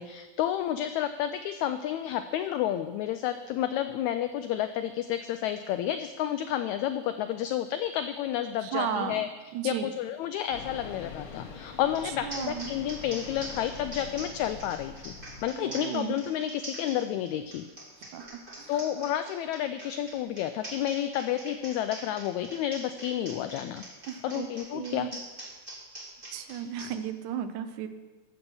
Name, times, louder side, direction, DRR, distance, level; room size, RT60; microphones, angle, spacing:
voice 1, 0.0-9.3 9.6-15.1 15.4-17.7 18.7-23.8 24.2-25.1, left 11 dB, 80° left, 9 dB, 1.7 m, -30 dB
voice 2, 8.6-9.2 9.5-9.9 12.0-12.7 15.5-16.1 18.1-18.7 24.1-25.1 26.3-27.9, right 8 dB, 75° right, 10 dB, 2.1 m, -35 dB
sound 1, 10.5-15.5, left 5 dB, 55° left, 1.6 m, -44 dB
sound 2, 11.9-12.0 12.3-26.9, right 1 dB, 15° right, 2.7 m, -43 dB
14.0 x 6.8 x 7.0 m, 1.2 s
omnidirectional pair, 3.7 m